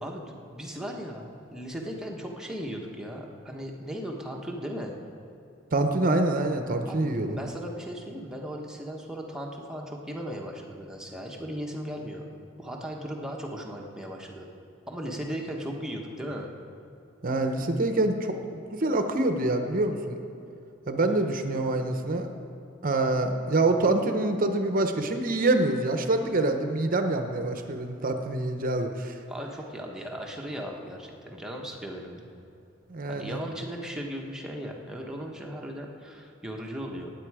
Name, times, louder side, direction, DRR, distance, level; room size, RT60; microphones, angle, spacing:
voice 1, 0.0-4.9 6.9-7.0 7.3-12.2 12.6-14.5 14.9-16.5 29.3-32.3 33.1-37.1, equal, 5° right, 0 dB, 1.2 m, -37 dB
voice 2, 5.7-7.4 17.2-20.2 20.9-22.3 22.8-29.1 32.9-33.4, right 2 dB, 45° right, 6 dB, 0.8 m, -26 dB
19.0 x 8.5 x 4.8 m, 2.8 s
head